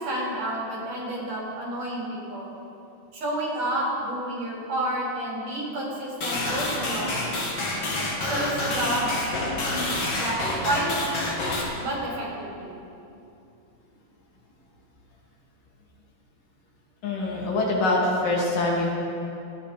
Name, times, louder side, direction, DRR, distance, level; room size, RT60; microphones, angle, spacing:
voice 1, 0.0-2.5 3.1-7.4 8.3-9.2 9.7-11.2 11.8-12.7, right 1 dB, 70° right, -4 dB, 6.8 m, -30 dB
sound 1, 6.2-11.6, left 2 dB, 50° left, 2.9 m, -28 dB
voice 2, 17.0-18.9, left 2 dB, 80° left, -3 dB, 4.4 m, -24 dB
26.5 x 10.5 x 5.2 m, 2.7 s
omnidirectional pair, 3.8 m